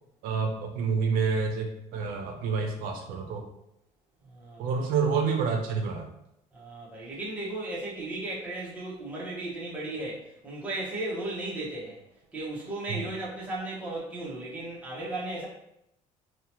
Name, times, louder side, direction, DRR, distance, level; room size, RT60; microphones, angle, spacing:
voice 1, 0.2-3.5 4.6-6.1 12.9-13.0, right 5 dB, 85° right, 4 dB, 0.4 m, -28 dB
voice 2, 4.3-4.8 6.5-12.0 12.3-15.5, right 2 dB, 10° right, -7 dB, 0.8 m, -35 dB
2.7 x 2.1 x 2.9 m, 0.80 s
cardioid pair, 155°, 14 cm